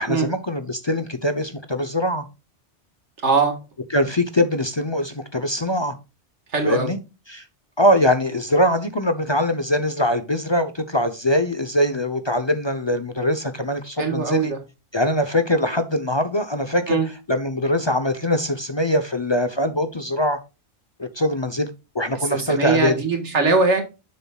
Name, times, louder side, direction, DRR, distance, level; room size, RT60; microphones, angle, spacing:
voice 1, 0.0-2.2 3.9-5.9 6.6-7.0 7.3-7.4 7.8-14.5 14.9-17.0 17.3-20.4 21.0-21.7 21.9-22.9, left 1 dB, 30° left, 0.7 m, -22 dB
voice 2, 3.2-3.6 6.5-6.9 14.0-14.6 16.9-17.1 22.2-23.8, right 4 dB, 85° right, 2.0 m, -21 dB
8.4 x 7.1 x 2.3 m
omnidirectional pair, 1.2 m